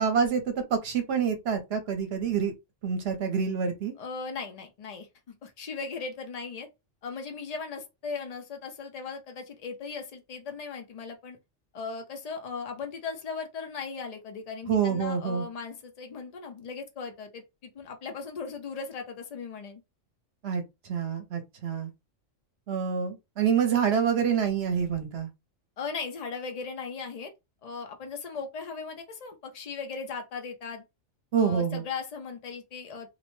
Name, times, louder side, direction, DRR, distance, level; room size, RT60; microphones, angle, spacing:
voice 1, 0.0-2.5 2.8-3.9 14.7-15.5 20.4-21.9 22.7-25.3 31.3-31.8, right 7 dB, 60° right, 0.8 m, -27 dB
voice 2, 4.0-5.1 5.4-6.7 7.0-11.4 11.7-19.8 25.8-27.3 27.6-30.8 31.4-33.1, left 5 dB, 75° left, 0.3 m, -38 dB
2.6 x 2.1 x 3.0 m
omnidirectional pair, 1.3 m